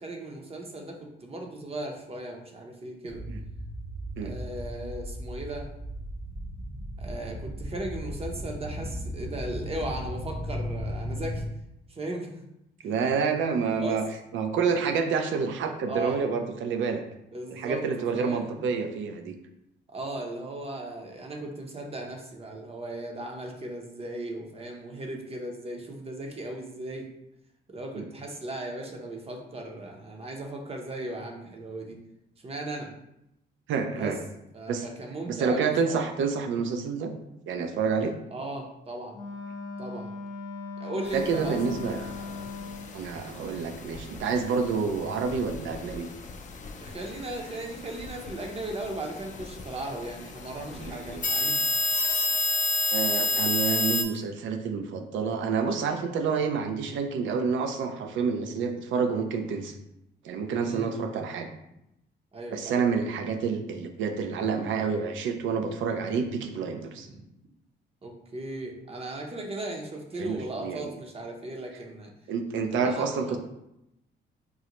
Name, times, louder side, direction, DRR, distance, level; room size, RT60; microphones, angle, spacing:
voice 1, 0.0-3.2 4.2-5.7 7.0-11.4 11.9-12.4 12.8-13.0 13.8-14.0 15.9-16.2 17.3-18.5 19.9-27.1 27.7-32.0 32.4-32.9 33.9-34.1 34.5-36.0 38.3-39.2 39.8-40.1 40.8-41.6 41.8-42.5 46.8-51.5 60.6-60.9 62.3-62.8 66.9-67.2 68.0-72.1 72.8-73.4, right 1 dB, 30° right, 1 dB, 0.6 m, -37 dB
sound 1, 3.1-11.5, equal, 55° right, 1.0 m, -36 dB
voice 2, 12.8-14.0 14.3-17.0 17.5-19.4 27.9-28.1 33.7-34.2 34.7-34.9 35.3-37.1 37.5-38.1 41.1-42.1 42.9-46.1 50.7-51.5 52.9-59.7 60.2-61.5 62.5-67.1 70.2-71.0 72.3-73.4, right 5 dB, 75° right, 6 dB, 0.5 m, -28 dB
Wind instrument woodwind instrument, 39.1-43.0, left 4 dB, 80° left, 0.7 m, -39 dB
sound 2, 41.1-54.0, left 3 dB, 40° left, 0.4 m, -32 dB
3.7 x 2.1 x 2.9 m, 0.84 s
cardioid pair, 90°, 20 cm